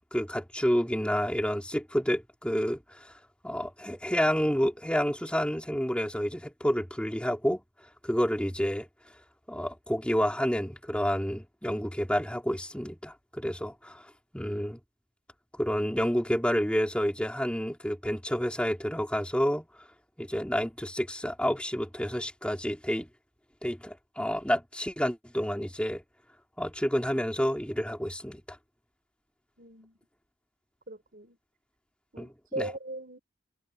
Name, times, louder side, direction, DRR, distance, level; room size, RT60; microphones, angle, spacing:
voice 1, 0.1-3.1 3.4-7.6 8.0-8.9 9.5-14.0 14.3-14.8 15.6-19.7 20.2-23.1 23.6-26.0 26.6-28.6 32.2-32.3 32.6-32.7, equal, 5° left, 3.9 m, -29 dB
voice 2, 29.6-30.0 30.9-31.4 32.1-33.2, right 2 dB, 45° right, 5.7 m, -39 dB
head